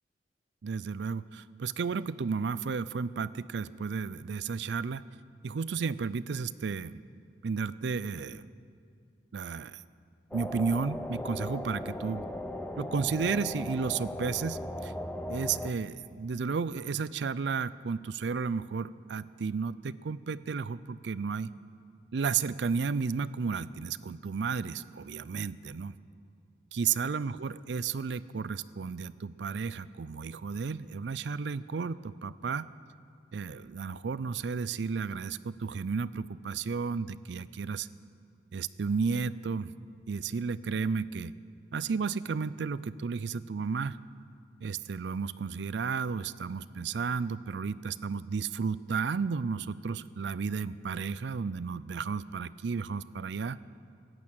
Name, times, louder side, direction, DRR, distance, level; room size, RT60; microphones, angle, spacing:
voice 1, 0.6-5.0 5.4-7.0 7.4-8.5 9.3-9.8 10.3-12.3 12.8-14.9 15.3-21.5 22.1-25.9 26.7-32.7 33.3-37.9 38.5-39.7 40.1-41.3 41.7-44.0 44.6-53.6, right 5 dB, 70° right, 18 dB, 0.4 m, -33 dB
sound 1, 10.3-15.7, left 1 dB, 10° left, 0.6 m, -38 dB
14.5 x 11.0 x 8.8 m, 2.4 s
head